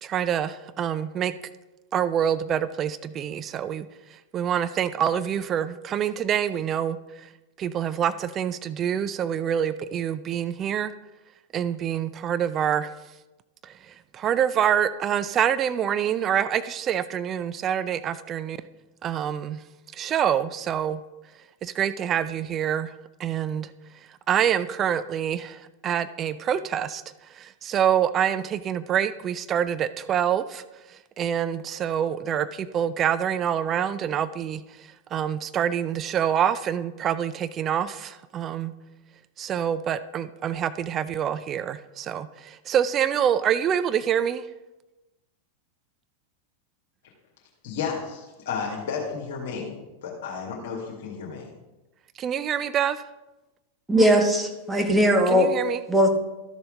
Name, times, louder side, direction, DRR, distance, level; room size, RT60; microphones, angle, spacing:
voice 1, 0.0-1.3 1.9-3.9 4.3-7.3 7.6-10.9 11.5-12.9 13.6-18.6 19.0-19.6 19.9-21.0 21.6-22.9 23.2-23.7 24.3-27.0 27.3-30.6 31.2-38.7 39.4-44.4 52.2-53.0 55.3-55.8, right 9 dB, 30° right, 14 dB, 0.4 m, -26 dB
voice 2, 47.6-49.8 50.0-51.5, left 6 dB, 55° left, -2 dB, 2.0 m, -32 dB
voice 3, 53.9-55.5 55.9-56.1, equal, 5° right, 3 dB, 1.3 m, -19 dB
13.0 x 6.9 x 3.7 m, 1.1 s
figure-of-eight pair, 90°, 0 cm